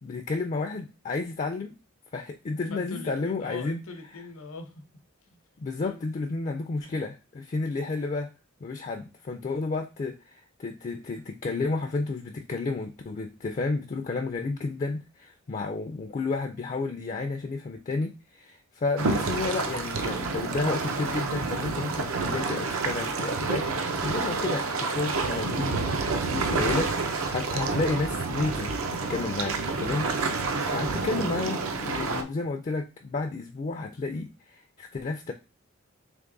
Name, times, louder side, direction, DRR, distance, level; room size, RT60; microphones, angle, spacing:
voice 1, 0.0-1.8 2.1-3.8 5.6-8.3 8.6-30.3 30.7-35.3, left 3 dB, 35° left, 0.4 m, -31 dB
voice 2, 2.7-4.8 5.3-5.4 5.8-6.0 9.0-9.1, left 3 dB, 80° left, 0.9 m, -41 dB
sound 1, 19.0-32.2, right 4 dB, 80° right, 0.6 m, -29 dB
3.5 x 3.3 x 3.8 m
head